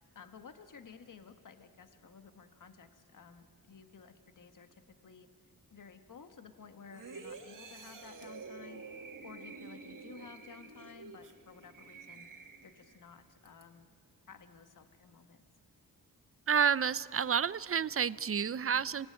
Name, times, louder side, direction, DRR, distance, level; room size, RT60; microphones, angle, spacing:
voice 1, 0.1-5.3 5.7-8.8 9.2-12.3 12.6-13.9 14.3-15.4, left 6 dB, 55° left, 8 dB, 1.4 m, -54 dB
sound 1, 6.9-13.0 13.5-13.6, right 4 dB, 55° right, 2.2 m, -49 dB
voice 2, 16.5-19.1, right 7 dB, 40° right, 18 dB, 0.6 m, -30 dB
26.0 x 18.0 x 9.7 m, 2.3 s
cardioid pair, 70°, 37 cm